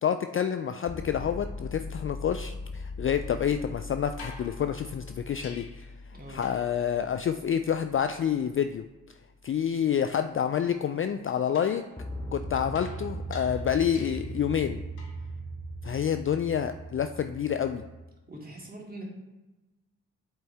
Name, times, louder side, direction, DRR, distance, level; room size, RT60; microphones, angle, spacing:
voice 1, 0.0-5.9 6.3-8.8 9.4-11.8 12.3-14.8 15.8-17.8, left 8 dB, 35° left, 8 dB, 0.4 m, -28 dB
sound 1, 0.8-8.7 12.0-18.0, equal, 10° left, 1.4 m, -40 dB
sound 2, 4.2-6.0 6.4-6.9 11.5-14.4 15.0-15.3 17.3-17.4, left 4 dB, 75° left, 1.2 m, -49 dB
voice 2, 6.1-6.4 18.3-19.0, right 1 dB, 25° right, -2 dB, 2.3 m, -43 dB
7.8 x 4.5 x 3.4 m, 1.1 s
hypercardioid pair, 45°, 38 cm